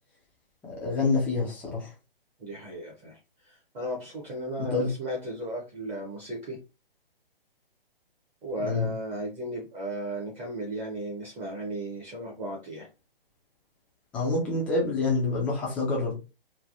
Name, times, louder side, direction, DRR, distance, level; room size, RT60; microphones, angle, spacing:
voice 1, 0.7-1.9 4.6-4.9 8.6-8.9 14.1-16.1, left 3 dB, 5° left, -3 dB, 0.4 m, -27 dB
voice 2, 2.4-6.6 8.4-12.9, right 1 dB, 20° right, -3 dB, 0.8 m, -35 dB
3.2 x 2.2 x 2.5 m, 0.29 s
figure-of-eight pair, 135°, 29 cm